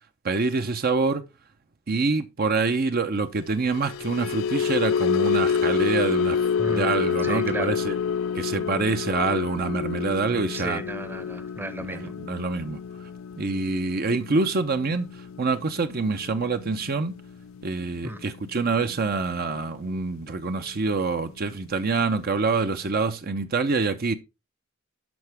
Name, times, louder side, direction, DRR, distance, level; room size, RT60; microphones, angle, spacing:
voice 1, 0.2-1.2 1.9-6.4 6.7-8.0 8.3-10.8 11.8-12.8 13.4-17.1 17.6-24.2, right 4 dB, 50° right, 0.7 m, -26 dB
sound 1, 3.6-20.0 20.3-20.6 20.9-21.2, left 6 dB, 75° left, 0.4 m, -29 dB
voice 2, 6.6-7.8 10.3-12.1 18.0-18.2, right 1 dB, 10° right, 0.8 m, -34 dB
12.5 x 4.9 x 3.5 m
head